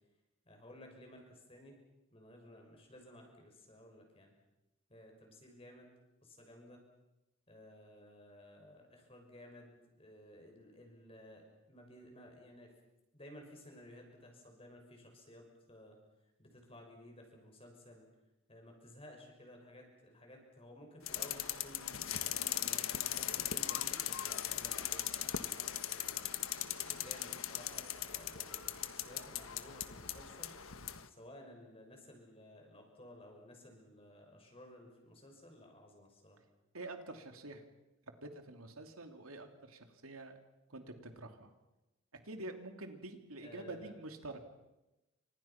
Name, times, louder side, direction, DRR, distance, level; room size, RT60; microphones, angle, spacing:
voice 1, 0.4-1.8 2.1-4.4 4.9-5.9 6.2-6.8 7.5-12.7 13.1-16.0 16.4-18.0 18.5-22.1 22.5-26.3 26.9-30.5 31.1-36.4 43.4-43.9, left 1 dB, 25° left, 2 dB, 6.3 m, -56 dB
sound 1, 21.1-31.0, left 11 dB, 80° left, 1.4 m, -39 dB
voice 2, 36.7-37.6 38.2-40.4 40.7-41.5 42.1-44.4, right 2 dB, 90° right, 6 dB, 3.0 m, -47 dB
30.0 x 26.0 x 6.0 m, 0.97 s
head